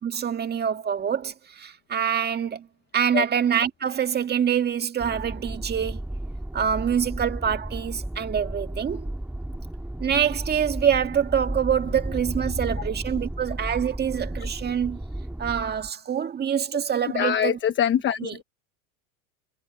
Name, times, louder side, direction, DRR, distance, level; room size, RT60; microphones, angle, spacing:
voice 1, 0.0-2.7 2.9-6.0 6.5-9.1 10.0-15.0 15.4-17.6 18.2-18.4, right 8 dB, 20° right, 1.8 m, -25 dB
sound 1, 5.0-15.9, right 1 dB, 5° right, 2.2 m, -33 dB
voice 2, 17.1-18.4, left 9 dB, 25° left, 1.1 m, -24 dB
supercardioid pair, 130°, 47 cm